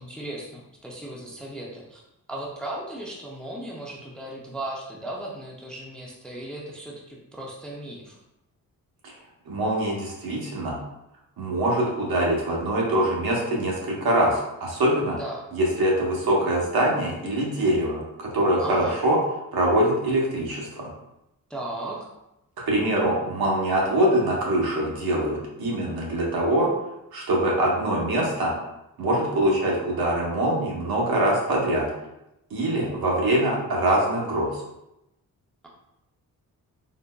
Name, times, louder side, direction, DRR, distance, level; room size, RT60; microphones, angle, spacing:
voice 1, 0.0-2.0 2.3-8.2 15.2-15.5 18.6-19.0 21.5-22.1, right 1 dB, 5° left, -3 dB, 0.3 m, -36 dB
voice 2, 9.5-10.8 11.4-15.2 15.5-19.2 19.5-20.9 22.7-26.7 27.1-28.5 29.0-31.9 32.5-34.6, right 1 dB, 85° right, -3 dB, 0.9 m, -23 dB
3.8 x 2.2 x 2.2 m, 0.88 s
wide cardioid pair, 165°, 36 cm